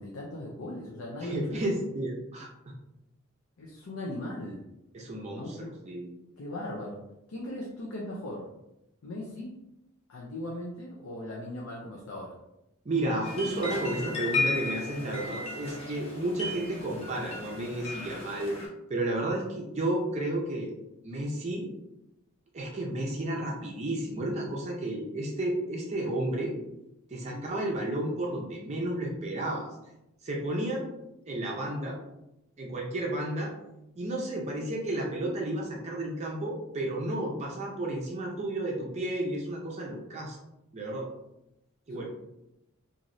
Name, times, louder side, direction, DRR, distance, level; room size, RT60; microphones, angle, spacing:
voice 1, 0.0-1.6 3.6-4.6 5.3-5.7 6.4-7.0 7.3-8.5 9.0-9.5 10.1-12.4 27.2-27.5 41.9-42.1, left 1 dB, 80° left, -3 dB, 0.5 m, -38 dB
voice 2, 1.2-2.5 4.9-5.6 5.8-6.1 12.9-18.5 18.9-20.7 21.0-21.7 22.5-26.6 27.1-29.7 30.2-30.9 31.3-32.0 32.6-33.5 34.0-40.4 40.7-41.1 41.9-42.1, right 1 dB, 35° right, -1 dB, 0.5 m, -32 dB
sound 1, 13.2-18.7, left 2 dB, 30° left, 0.7 m, -34 dB
3.0 x 2.5 x 2.6 m, 0.88 s
head